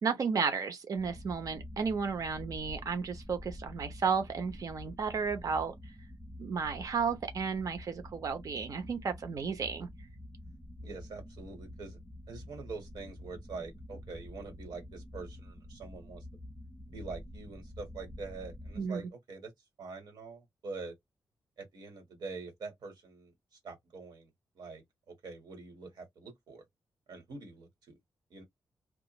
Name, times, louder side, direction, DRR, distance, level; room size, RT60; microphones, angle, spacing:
voice 1, 0.0-5.7 6.4-9.9 18.8-19.0, right 5 dB, 50° right, 0.7 m, -33 dB
sound 1, 1.0-18.8, left 1 dB, 5° right, 0.4 m, -48 dB
voice 2, 10.8-12.0 12.3-16.2 16.9-19.5 19.8-20.9 21.6-23.3 23.6-24.3 24.5-26.6 27.1-27.9 28.3-28.4, right 4 dB, 65° right, 1.4 m, -45 dB
2.3 x 2.3 x 2.9 m
wide cardioid pair, 170°, 8 cm